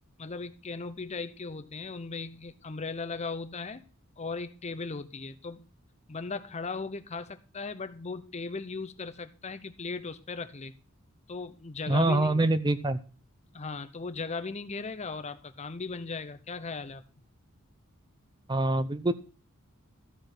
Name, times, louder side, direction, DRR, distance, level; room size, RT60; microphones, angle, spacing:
voice 1, 0.2-3.8 4.2-5.7 6.1-10.7 11.3-12.4 13.5-17.0, left 4 dB, 30° left, 11 dB, 0.7 m, -37 dB
voice 2, 11.9-13.0 18.5-19.1, right 2 dB, 20° right, 12 dB, 0.5 m, -25 dB
13.5 x 5.1 x 6.0 m, 0.37 s
head